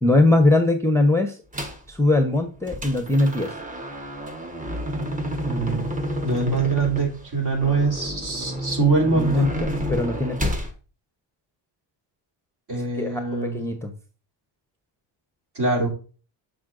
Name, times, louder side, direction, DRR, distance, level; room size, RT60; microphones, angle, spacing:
voice 1, 0.0-1.4 1.9-3.5 9.1-10.6 13.0-13.2 13.5-13.9, left 2 dB, 5° left, 5 dB, 0.7 m, -21 dB
sound 1, 1.5-1.9 2.3-10.7, equal, 15° right, 1.1 m, -30 dB
voice 2, 5.4-5.9 6.2-9.5 12.7-13.6 15.5-15.9, right 3 dB, 50° right, 0 dB, 3.0 m, -23 dB
6.7 x 5.9 x 2.5 m, 0.38 s
cardioid pair, 80°, 50 cm